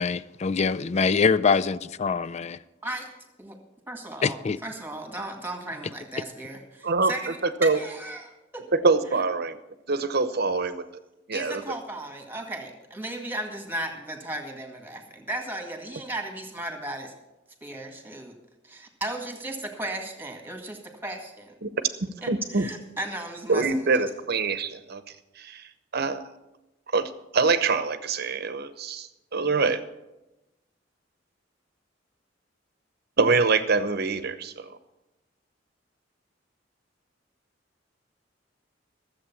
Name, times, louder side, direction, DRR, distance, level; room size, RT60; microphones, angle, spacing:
voice 1, 0.0-2.6 4.5-4.6, left 5 dB, 35° left, 0.4 m, -24 dB
voice 2, 3.9-4.4 4.6-8.7 11.3-17.1 17.6-18.3 18.6-21.5 22.2-23.9, right 1 dB, 10° right, 1.9 m, -35 dB
voice 3, 6.8-7.8 8.7-9.6 9.9-10.8 11.3-11.6 21.6-21.7 22.0-22.7 23.5-25.0 25.4-26.2 26.9-29.8 33.2-34.8, right 4 dB, 55° right, 0.9 m, -25 dB
14.0 x 7.8 x 7.1 m
head